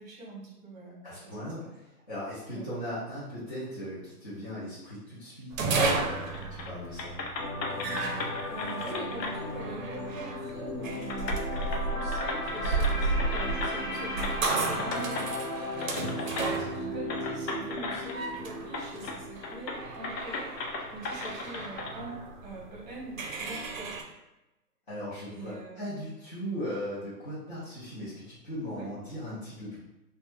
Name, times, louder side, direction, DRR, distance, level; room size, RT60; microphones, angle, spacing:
voice 1, 0.0-1.7 2.5-2.6 8.5-15.3 16.1-24.0 25.3-25.9 28.7-28.9, right 2 dB, 25° right, -4 dB, 0.8 m, -44 dB
voice 2, 1.0-7.1 15.8-16.1 24.9-29.8, equal, 30° left, -11 dB, 0.5 m, -38 dB
sound 1, 5.5-24.0, right 3 dB, 55° right, 0.5 m, -34 dB
sound 2, 6.3-6.7 7.0-9.4 10.5-10.6 11.0-13.9 14.2-15.3 15.8-16.5 17.1-18.4 18.7-19.2 19.4-21.9, left 3 dB, 90° left, 0.7 m, -37 dB
sound 3, 7.4-21.5 21.8-22.1, left 1 dB, 60° left, 1.0 m, -37 dB
2.3 x 2.1 x 3.0 m, 1.0 s
hypercardioid pair, 155°, 48 cm